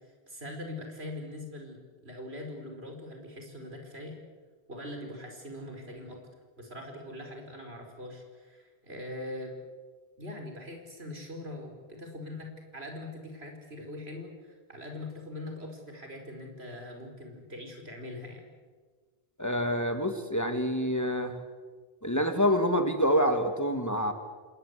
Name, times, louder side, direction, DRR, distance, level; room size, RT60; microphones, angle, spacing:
voice 1, 0.3-4.2 4.7-6.2 6.6-9.5 10.2-18.5, left 1 dB, 75° right, 3 dB, 5.0 m, -42 dB
voice 2, 19.4-21.4 22.0-24.1, equal, 15° left, 6 dB, 1.9 m, -27 dB
27.0 x 20.0 x 8.2 m, 1.4 s
omnidirectional pair, 1.1 m